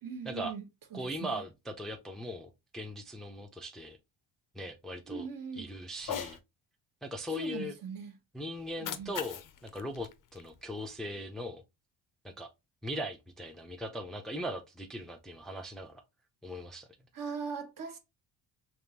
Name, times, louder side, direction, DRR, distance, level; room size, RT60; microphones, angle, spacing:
voice 1, 0.0-0.6 0.9-1.4 5.1-5.7 7.3-8.2 8.8-9.1 17.1-18.0, right 6 dB, 45° right, 1.1 m, -40 dB
voice 2, 0.9-4.0 4.5-5.3 5.6-6.4 7.0-7.7 8.3-11.6 12.2-12.5 12.8-16.0 16.4-16.9, equal, ahead, 0.6 m, -39 dB
Cat, 6.0-6.4 8.6-11.0, left 10 dB, 45° left, 0.6 m, -41 dB
3.5 x 3.1 x 2.8 m
supercardioid pair, 85°, 46 cm